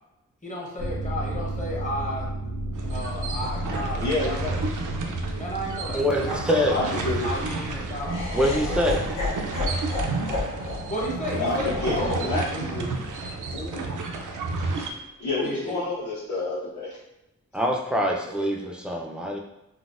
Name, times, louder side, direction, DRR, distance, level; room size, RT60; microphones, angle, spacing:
voice 1, 0.4-2.3 2.9-4.6 5.4-8.3 10.9-12.6 15.4-15.8 18.2-18.4, left 1 dB, 25° left, -4 dB, 0.8 m, -33 dB
sound 1, 0.8-12.9 13.2-13.3, right 1 dB, 45° left, 1.2 m, -35 dB
sound 2, 2.7-14.9, right 3 dB, 80° right, 0.5 m, -31 dB
voice 2, 4.0-4.5 6.7-7.3 11.4-12.8 13.5-13.8 15.2-17.0, left 2 dB, 70° left, -10 dB, 1.1 m, -29 dB
voice 3, 5.9-6.8 8.3-9.1 17.5-19.4, equal, 5° right, -1 dB, 0.3 m, -24 dB
Laughter, 8.0-14.2, left 2 dB, 85° left, 0.7 m, -33 dB
3.8 x 2.1 x 2.4 m, 0.89 s
wide cardioid pair, 140°, 31 cm